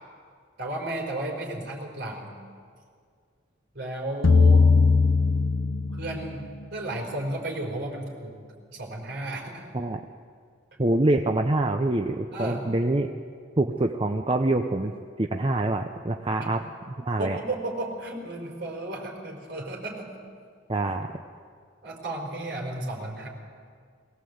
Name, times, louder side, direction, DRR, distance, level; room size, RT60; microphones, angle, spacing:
voice 1, 0.6-2.3 3.7-4.7 5.9-6.4 6.7-8.4 8.7-9.7 12.3-12.6 17.2-20.1 21.8-23.3, right 1 dB, 55° right, 1 dB, 4.5 m, -33 dB
sound 1, 4.2-6.5, left 4 dB, 75° left, 0.8 m, -19 dB
voice 2, 10.8-13.1 13.6-16.6 16.9-17.4 20.7-21.1, right 2 dB, 25° right, 4 dB, 0.7 m, -25 dB
22.0 x 17.0 x 8.0 m, 2.1 s
head